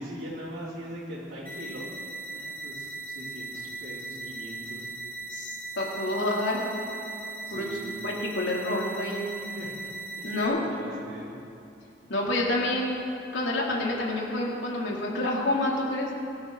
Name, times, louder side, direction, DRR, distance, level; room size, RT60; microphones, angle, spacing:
voice 1, 0.0-1.9 2.3-4.9 7.5-7.9 9.5-9.9 10.2-10.4 10.7-11.4, right 1 dB, 75° right, -10 dB, 3.4 m, -41 dB
sound 1, 1.5-10.5, right 2 dB, 10° left, 2.2 m, -38 dB
voice 2, 5.3-6.6 7.5-7.6 8.0-9.2 10.2-10.6 12.1-12.9 13.3-16.1, left 1 dB, 80° left, -3 dB, 3.2 m, -28 dB
23.5 x 12.0 x 4.0 m, 2.8 s
head